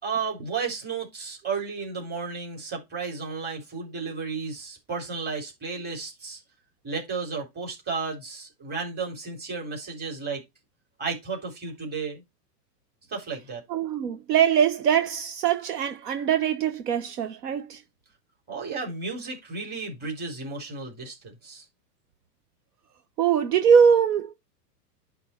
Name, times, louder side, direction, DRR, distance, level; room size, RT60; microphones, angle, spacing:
voice 1, 0.0-6.4 6.8-10.4 11.0-12.2 13.1-13.6 18.5-21.6, right 5 dB, 20° right, 4.0 m, -33 dB
voice 2, 13.7-17.8 23.2-24.3, right 7 dB, 70° right, 1.3 m, -22 dB
11.0 x 3.7 x 4.5 m
hypercardioid pair, 125°, 48 cm